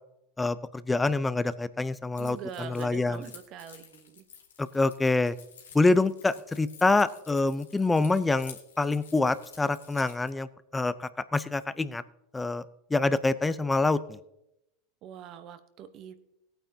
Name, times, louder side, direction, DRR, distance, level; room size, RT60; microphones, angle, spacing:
voice 1, 0.4-3.2 4.6-5.3 5.7-10.5 10.7-12.0 12.3-12.6 12.9-14.2, left 3 dB, 15° left, 15 dB, 0.6 m, -26 dB
Keys jangling, 2.2-10.3, left 7 dB, 85° left, 1.7 m, -51 dB
voice 2, 2.2-4.3 15.0-16.4, right 9 dB, 50° right, 11 dB, 1.0 m, -43 dB
18.0 x 9.1 x 2.8 m, 0.85 s
hypercardioid pair, 95°, 0 cm